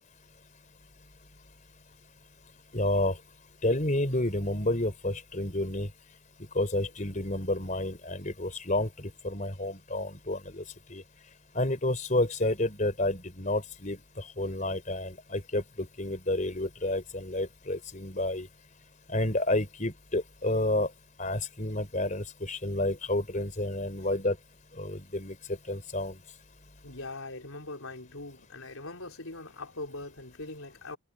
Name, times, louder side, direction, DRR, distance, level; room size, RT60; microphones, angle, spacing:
voice 1, 2.7-3.2 3.6-5.9 6.5-10.6 10.9-11.0 11.5-18.5 19.1-20.9 21.2-24.4 24.7-26.2, left 1 dB, 35° left, 4.0 m, -30 dB
voice 2, 26.8-31.0, left 2 dB, 80° left, 4.3 m, -41 dB
head